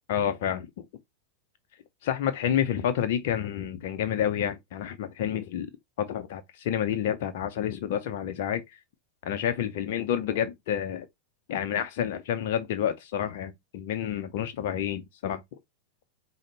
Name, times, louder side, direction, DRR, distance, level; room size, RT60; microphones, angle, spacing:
voice 1, 0.1-0.7 2.0-5.7 6.0-8.6 9.2-11.1 11.5-15.4, left 9 dB, 50° left, 0.5 m, -29 dB
5.0 x 2.1 x 3.9 m
figure-of-eight pair, 90°, 0 cm